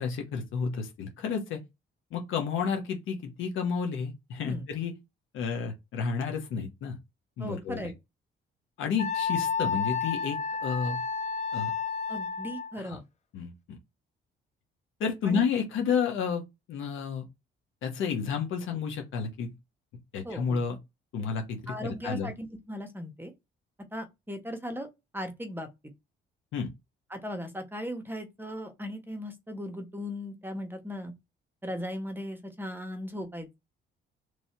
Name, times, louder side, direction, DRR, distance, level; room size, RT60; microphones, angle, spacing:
voice 1, 0.0-1.6 2.1-4.9 5.3-7.0 7.4-7.9 8.8-11.0 11.5-11.7 12.8-13.0 13.3-13.5 15.0-16.4 16.7-17.2 17.8-19.5 20.1-20.8 21.1-22.3 26.5-26.7, left 6 dB, 80° left, 1.0 m, -31 dB
voice 2, 7.4-7.9 12.1-13.0 15.2-15.4 20.2-20.6 21.7-23.3 23.9-24.9 25.1-25.9 27.1-31.1 31.6-33.5, equal, 10° right, 1.1 m, -37 dB
Wind instrument woodwind instrument, 9.0-12.8, left 5 dB, 35° left, 0.6 m, -31 dB
3.2 x 2.7 x 4.3 m
cardioid pair, 90°, 20 cm